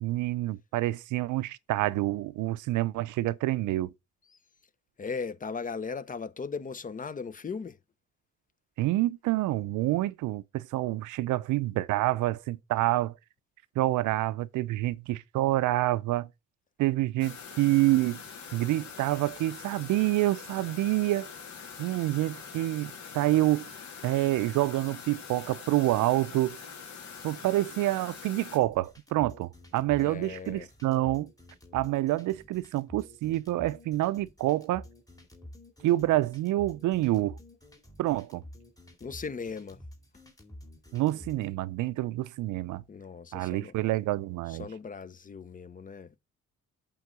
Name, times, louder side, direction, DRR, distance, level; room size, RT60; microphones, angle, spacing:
voice 1, 0.0-3.9 8.8-13.1 13.8-16.3 16.8-18.2 18.5-21.3 21.8-23.7 24.0-26.6 27.2-31.3 31.7-34.8 35.8-37.4 38.0-38.4 40.9-42.8 43.3-44.7, right 16 dB, 80° right, 0.5 m, -27 dB
voice 2, 5.0-7.8 30.0-30.7 39.0-39.8 42.9-43.7 44.5-46.1, left 5 dB, 25° left, 0.5 m, -38 dB
sound 1, 17.2-28.6, left 6 dB, 65° left, 2.2 m, -44 dB
sound 2, 28.6-41.5, left 1 dB, 10° left, 2.0 m, -50 dB
8.3 x 3.8 x 5.0 m
cardioid pair, 90°, 30 cm